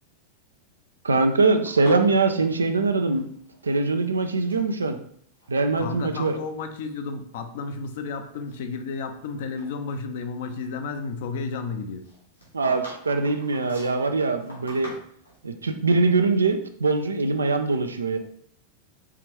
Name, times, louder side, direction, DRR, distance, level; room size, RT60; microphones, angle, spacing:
voice 1, 1.0-3.3 3.6-5.0 5.5-6.3 12.5-14.9 15.4-18.2, right 3 dB, 75° right, 7 dB, 0.4 m, -22 dB
sound 1, 1.7-3.7 3.9-4.7 5.3-5.9 6.2-6.4 7.1-7.2 7.7-9.3 9.6-9.7 12.0-15.4, equal, 90° left, 1.7 m, -43 dB
voice 2, 5.8-12.1, left 4 dB, 55° left, 7 dB, 0.6 m, -32 dB
4.7 x 3.4 x 3.0 m, 0.65 s
figure-of-eight pair, 90°, 0 cm